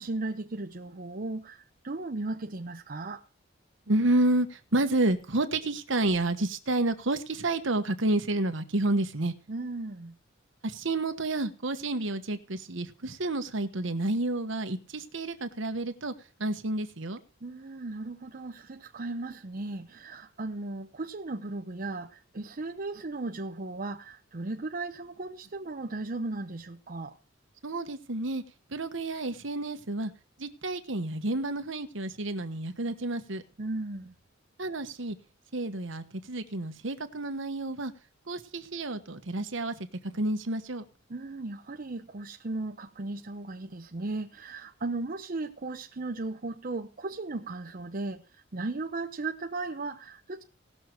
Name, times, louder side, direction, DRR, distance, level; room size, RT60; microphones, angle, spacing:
voice 1, 0.0-3.2 9.5-10.2 17.4-27.1 33.6-34.1 41.1-50.4, right 2 dB, 45° right, 0.8 m, -36 dB
voice 2, 3.9-9.3 10.6-16.1 16.4-17.2 27.6-28.4 28.7-30.1 30.4-33.4 34.6-35.2 35.5-37.9 38.3-40.8, right 2 dB, 70° right, 1.3 m, -30 dB
18.0 x 6.5 x 4.5 m
head